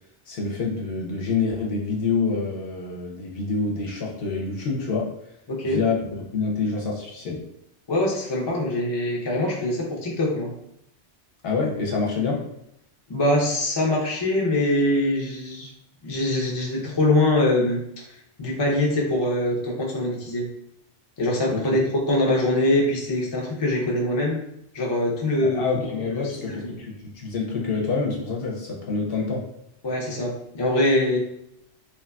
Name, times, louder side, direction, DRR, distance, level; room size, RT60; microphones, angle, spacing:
voice 1, 0.3-5.1 5.6-7.4 11.4-12.5 21.5-21.8 25.4-29.5, left 4 dB, 60° left, -2 dB, 0.8 m, -27 dB
voice 2, 5.5-5.8 7.9-10.5 13.1-15.7 16.0-17.8 18.4-20.5 21.2-21.8 22.1-24.4 24.7-25.6 26.1-26.7 29.8-31.2, left 1 dB, 35° left, -3 dB, 0.4 m, -23 dB
2.9 x 2.4 x 2.2 m, 0.77 s
omnidirectional pair, 1.2 m